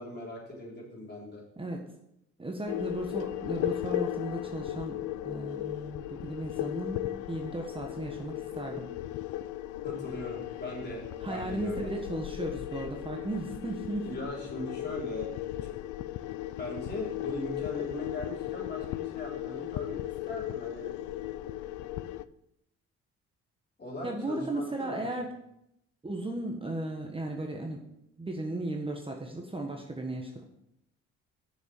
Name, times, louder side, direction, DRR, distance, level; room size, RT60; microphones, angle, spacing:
voice 1, 0.0-1.4 9.8-11.9 14.0-15.3 15.6-15.8 16.6-20.0 20.3-20.9 23.8-25.1, left 1 dB, 35° left, -4 dB, 4.0 m, -39 dB
voice 2, 2.4-5.0 5.2-8.9 11.2-14.1 24.0-25.3 26.0-27.8 28.2-30.5, right 1 dB, 20° right, 1 dB, 1.4 m, -35 dB
sound 1, 2.7-22.2, left 14 dB, 90° left, 0.5 m, -36 dB
6.7 x 6.7 x 7.1 m, 0.80 s
cardioid pair, 90°, 30 cm